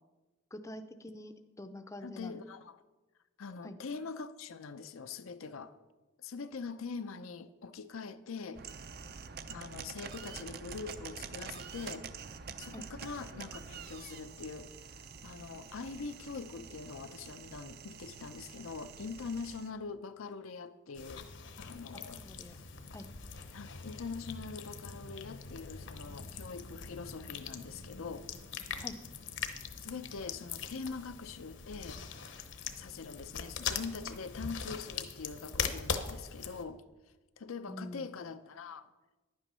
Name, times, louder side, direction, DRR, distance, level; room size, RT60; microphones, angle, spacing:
voice 1, 0.5-2.4 3.6-3.7 12.7-12.9 21.9-22.6 22.9-23.1 28.8-29.0 37.7-38.1, left 1 dB, 15° left, 8 dB, 0.5 m, -46 dB
voice 2, 2.0-2.8 3.4-5.8 6.2-8.6 9.5-12.1 12.6-21.3 21.6-22.7 23.5-28.3 29.8-32.0 32.7-36.8 37.4-38.9, left 4 dB, 85° left, 10 dB, 0.6 m, -43 dB
sound 1, 8.5-19.7, right 6 dB, 50° right, 0.6 m, -47 dB
sound 2, 20.9-36.6, left 6 dB, 65° left, 0.9 m, -41 dB
11.0 x 8.8 x 5.5 m, 1.1 s
head